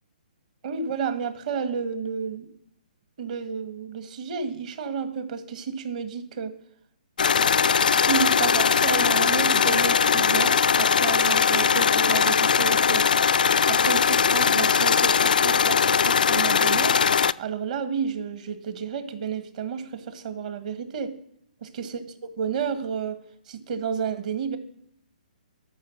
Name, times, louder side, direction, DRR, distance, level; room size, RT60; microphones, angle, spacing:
voice 1, 0.6-2.5 3.2-6.5 7.9-13.0 13.7-17.0 17.4-21.1 21.6-22.0 22.4-23.2 23.5-24.6, right 6 dB, 50° right, 9 dB, 1.8 m, -31 dB
sound 1, 7.2-17.3, left 6 dB, 70° left, 0.4 m, -20 dB
14.0 x 6.4 x 6.5 m, 0.71 s
figure-of-eight pair, 130°, 5 cm